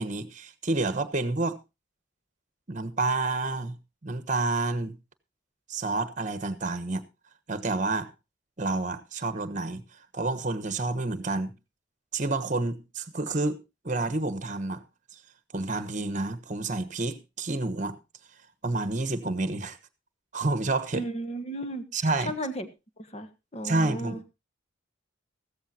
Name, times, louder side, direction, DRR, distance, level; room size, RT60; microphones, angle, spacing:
voice 1, 0.0-1.6 2.7-3.8 4.0-5.0 5.7-7.0 7.5-8.1 8.6-9.8 10.1-11.5 12.1-14.8 15.5-18.0 18.6-19.8 20.3-21.0 21.9-22.3 23.6-24.3, right 2 dB, 40° right, 1.2 m, -29 dB
voice 2, 20.9-21.8 22.2-22.7 23.0-24.2, right 1 dB, 35° left, 1.4 m, -34 dB
15.0 x 14.0 x 2.9 m
head